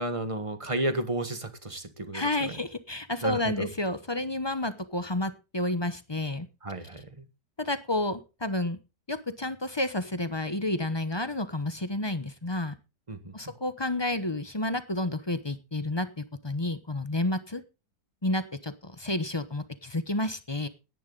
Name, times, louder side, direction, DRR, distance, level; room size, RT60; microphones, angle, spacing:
voice 1, 0.0-2.6 3.2-3.7 6.6-7.3 13.1-13.5, right 1 dB, 20° right, 1.5 m, -33 dB
voice 2, 2.1-6.5 7.6-8.8 9.1-12.7 13.3-17.6 18.2-20.7, left 1 dB, 20° left, 0.8 m, -30 dB
17.0 x 10.5 x 4.0 m
omnidirectional pair, 1.8 m